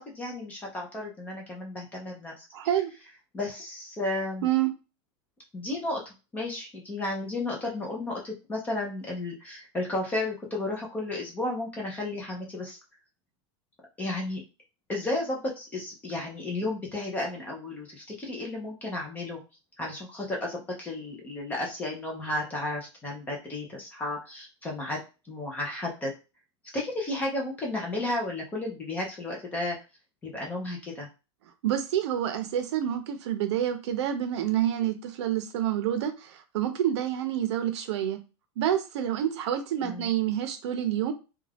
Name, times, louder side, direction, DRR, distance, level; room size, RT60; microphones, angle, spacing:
voice 1, 0.0-2.4 3.3-4.5 5.5-12.8 14.0-14.4 14.9-19.4 19.8-25.0 25.3-26.1 26.7-29.8 30.2-31.1 39.8-40.1, left 2 dB, 10° left, -1 dB, 0.5 m, -33 dB
voice 2, 2.5-2.9 4.4-4.7 31.6-38.2 38.6-41.1, right 11 dB, 65° right, 8 dB, 0.6 m, -28 dB
2.3 x 2.3 x 3.3 m, 0.30 s
supercardioid pair, 175°, 15 cm